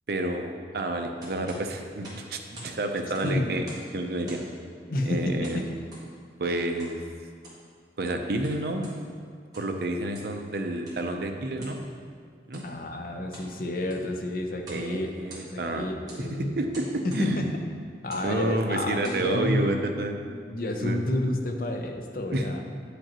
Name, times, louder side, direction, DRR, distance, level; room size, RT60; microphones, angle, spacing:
voice 1, 0.1-3.7 3.9-4.4 5.1-5.6 6.4-7.0 8.0-8.8 9.6-11.8 12.5-12.6 14.7-15.9 16.2-16.9 17.1-17.4 18.2-20.2 20.8-21.0 22.3-22.6, right 1 dB, 60° right, 4 dB, 0.6 m, -29 dB
sound 1, 1.2-2.8 3.0-3.9 4.2-4.6 5.4-6.1 6.8-7.0 7.3-7.7 8.2-9.0 9.4-9.8 10.1-10.4 10.8-11.0 11.6-11.8 12.4-12.7 13.1-13.5 13.8-14.1 14.6-14.9 15.1-15.7 16.1-16.3 16.7-17.3 18.0-18.3 18.8-19.2, right 1 dB, 20° right, 1.6 m, -47 dB
voice 2, 4.9-5.6 12.6-15.1 15.4-16.5 17.0-17.5 18.0-19.8 20.3-22.6, left 1 dB, 50° left, 3 dB, 0.6 m, -30 dB
8.7 x 5.1 x 2.9 m, 2.1 s
head